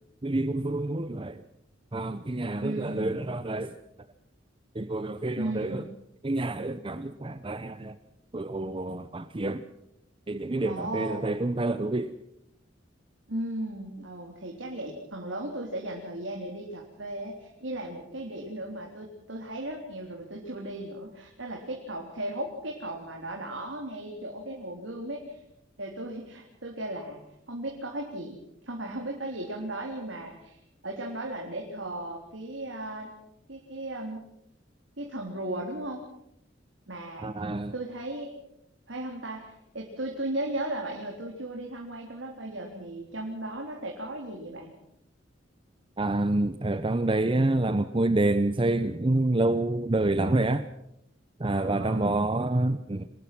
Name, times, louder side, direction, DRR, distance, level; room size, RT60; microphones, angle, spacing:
voice 1, 0.2-1.4 1.9-3.8 4.7-5.9 6.2-8.0 8.3-9.6 10.3-12.1 37.2-37.7 46.0-50.7 51.4-53.1, right 2 dB, 25° right, 11 dB, 0.7 m, -27 dB
voice 2, 2.6-3.2 5.4-5.8 10.6-11.3 13.3-25.4 25.8-27.2 27.5-28.4 28.6-30.6 30.8-33.1 33.5-34.2 35.0-36.1 36.9-37.3 37.7-38.3 38.9-44.7 51.5-52.2, right 1 dB, 80° right, 0 dB, 3.7 m, -36 dB
26.0 x 20.0 x 6.1 m, 0.79 s
head